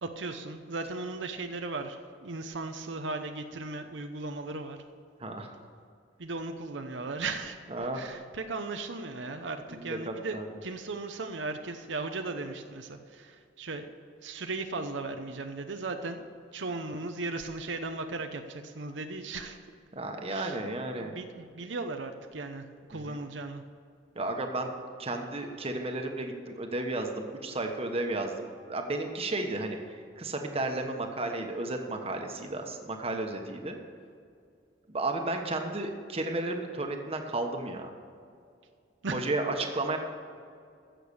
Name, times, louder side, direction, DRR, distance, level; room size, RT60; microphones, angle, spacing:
voice 1, 0.0-4.8 6.2-7.6 7.9-13.9 14.2-16.3 16.5-19.6 20.3-20.6 21.0-23.6 39.0-39.3, right 3 dB, 85° right, 6 dB, 0.8 m, -37 dB
voice 2, 5.2-5.5 7.7-8.0 9.8-10.5 19.9-21.1 22.9-23.2 24.1-24.7 25.0-33.8 34.9-37.9 39.1-40.0, right 2 dB, 35° right, 4 dB, 1.3 m, -33 dB
15.0 x 6.8 x 7.0 m, 2.3 s
head